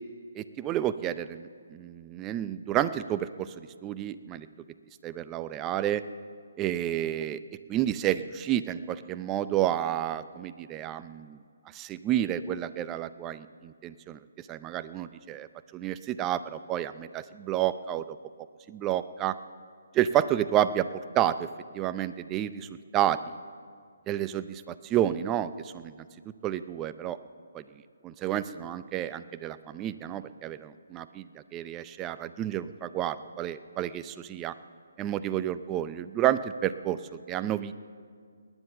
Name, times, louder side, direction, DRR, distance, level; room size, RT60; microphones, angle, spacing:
voice 1, 0.3-4.5 5.0-6.0 6.6-7.4 7.7-11.4 11.7-14.2 14.5-15.5 15.7-18.0 18.7-19.4 19.9-20.9 21.1-21.5 21.7-22.7 22.9-23.2 24.1-25.9 26.4-27.2 27.5-27.6 28.0-31.3 31.5-34.5 35.0-37.0 37.3-37.7, right 11 dB, 20° right, 13 dB, 0.5 m, -30 dB
19.5 x 10.0 x 7.0 m, 2.1 s
hypercardioid pair, 150°, 0 cm